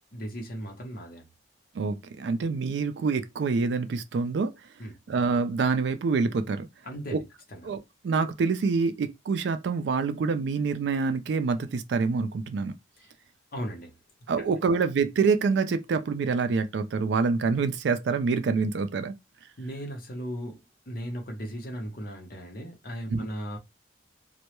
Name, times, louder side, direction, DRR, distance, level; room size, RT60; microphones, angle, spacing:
voice 1, 0.1-1.3 4.8-4.9 6.8-7.2 7.5-7.7 13.0-13.1 13.5-14.0 19.6-23.6, equal, 50° left, 0.7 m, -37 dB
voice 2, 1.7-4.5 5.1-6.7 7.1-7.2 7.6-12.7 14.3-19.1 23.1-23.3, right 4 dB, 65° right, 0.3 m, -26 dB
2.2 x 2.0 x 2.9 m
head